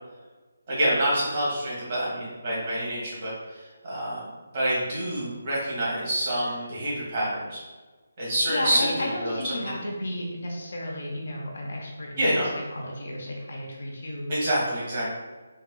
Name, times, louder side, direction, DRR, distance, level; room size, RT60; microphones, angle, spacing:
voice 1, 0.7-4.3 4.5-7.6 8.2-9.8 12.2-12.5 14.3-15.1, right 1 dB, 35° right, -6 dB, 1.3 m, -27 dB
voice 2, 8.5-14.3, left 1 dB, 55° left, -1 dB, 0.7 m, -33 dB
3.7 x 2.8 x 2.2 m, 1.3 s
figure-of-eight pair, 150°, 0 cm